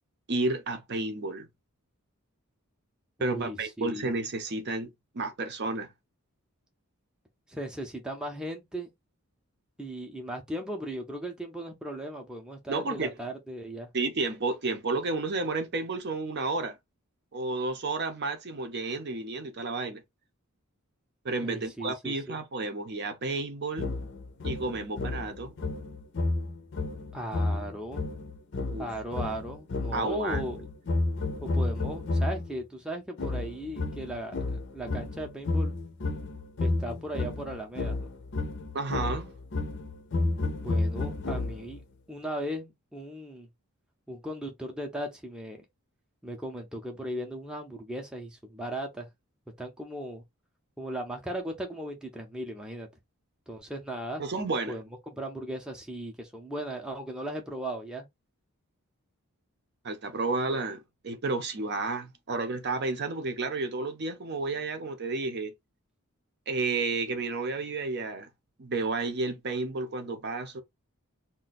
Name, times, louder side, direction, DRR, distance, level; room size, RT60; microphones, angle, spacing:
voice 1, 0.3-1.5 3.2-5.9 12.7-13.1 13.9-16.8 17.3-20.0 21.2-23.9 24.4-25.5 28.7-28.9 29.9-30.4 38.7-39.3 54.2-54.8 59.8-65.5 66.5-68.3 68.6-70.6, right 3 dB, 50° right, 0.6 m, -31 dB
voice 2, 3.2-4.1 7.5-8.9 9.8-13.9 21.4-22.4 27.1-28.0 28.8-30.7 31.4-35.8 36.6-38.1 40.6-41.8 42.1-43.5 44.1-45.7 46.2-49.1 49.6-50.2 50.8-52.9 53.5-54.2 54.7-54.8 55.1-58.1, right 1 dB, 5° right, 0.6 m, -37 dB
sound 1, 23.8-32.5 33.2-41.8, left 2 dB, 55° left, 0.6 m, -31 dB
2.5 x 2.2 x 3.9 m
head